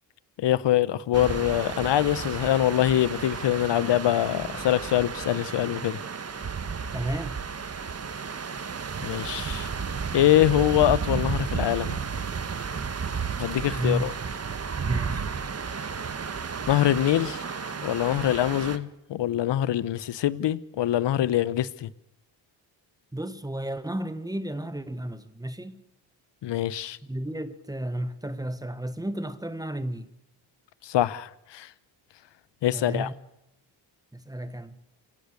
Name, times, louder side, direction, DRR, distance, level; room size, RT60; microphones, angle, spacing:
voice 1, 0.4-6.0 9.0-9.7 10.1-12.0 13.4-14.1 16.7-21.9 26.4-27.0 30.8-31.7 32.6-33.1, left 12 dB, 65° left, 1.0 m, -24 dB
sound 1, 1.1-18.8, right 6 dB, 30° right, 1.4 m, -33 dB
voice 2, 6.9-7.4 13.7-14.1 14.9-15.2 23.1-25.8 27.0-30.1 32.7-33.2 34.1-34.8, right 1 dB, 10° right, 1.5 m, -32 dB
29.0 x 17.0 x 6.7 m
cardioid pair, 95°, 46 cm